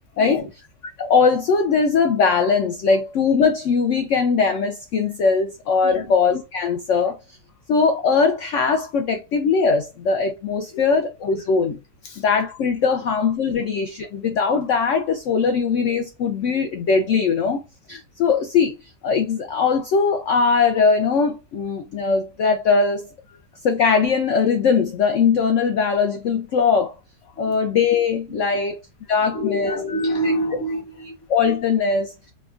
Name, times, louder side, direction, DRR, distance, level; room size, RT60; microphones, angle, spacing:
voice 1, 0.2-0.5 5.8-6.1 12.0-12.2 28.5-28.6 29.3-31.1, equal, 45° left, 1.2 m, -26 dB
voice 2, 1.0-7.2 7.7-11.8 12.2-17.6 17.9-18.7 19.0-23.1 23.6-26.9 27.4-28.8 29.1-29.8 30.2-30.3 31.0-32.1, left 5 dB, 80° left, 0.6 m, -20 dB
4.3 x 2.3 x 2.4 m
omnidirectional pair, 1.8 m